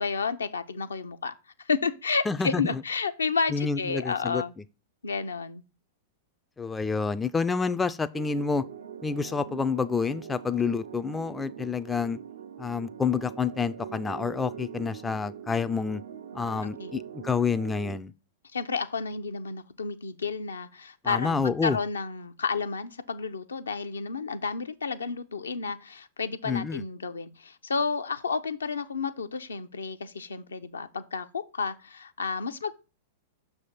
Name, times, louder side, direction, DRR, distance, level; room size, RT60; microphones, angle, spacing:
voice 1, 0.0-1.3 1.6-4.5 5.0-5.6 16.8-16.9 18.5-32.7, left 5 dB, 75° left, 0.6 m, -31 dB
voice 2, 2.3-2.8 3.5-4.4 6.6-8.7 9.0-12.2 12.6-16.0 16.3-18.1 21.0-21.8 26.5-26.8, left 5 dB, 15° left, 0.3 m, -28 dB
sound 1, 8.1-18.0, right 8 dB, 70° right, 0.5 m, -42 dB
6.2 x 3.4 x 5.7 m
figure-of-eight pair, 100°, 0 cm